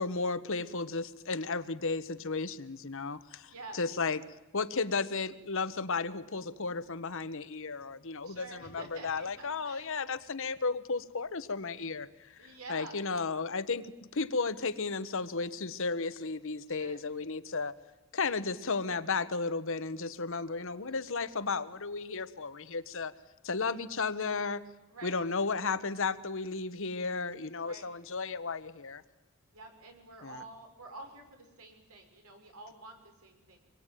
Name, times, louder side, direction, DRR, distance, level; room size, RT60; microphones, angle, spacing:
voice 1, 0.0-4.2 4.5-12.1 12.7-13.9 14.1-17.7 18.1-23.1 23.4-24.6 25.0-29.0 30.2-30.4, left 4 dB, 65° left, 13 dB, 1.2 m, -34 dB
voice 2, 3.5-3.8 8.2-10.0 12.4-13.0 16.7-17.0 20.7-21.0 24.9-25.2 27.6-27.9 29.5-33.6, right 2 dB, 85° right, 4 dB, 5.9 m, -49 dB
26.0 x 22.0 x 9.2 m, 1.0 s
head